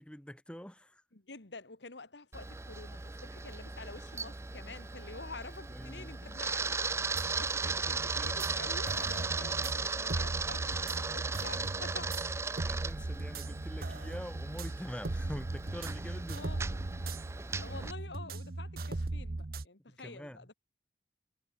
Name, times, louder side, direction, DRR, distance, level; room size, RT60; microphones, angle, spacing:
voice 1, 0.0-1.0 5.7-6.2 7.1-7.2 12.6-16.4 20.0-20.5, equal, 5° left, 1.4 m, -45 dB
voice 2, 1.1-6.9 7.2-12.2 16.3-16.8 17.6-20.5, left 3 dB, 85° left, 2.0 m, -48 dB
Camera, 2.3-17.9, right 4 dB, 15° right, 0.5 m, -37 dB
sound 1, 7.1-19.7, right 2 dB, 55° right, 0.8 m, -39 dB
head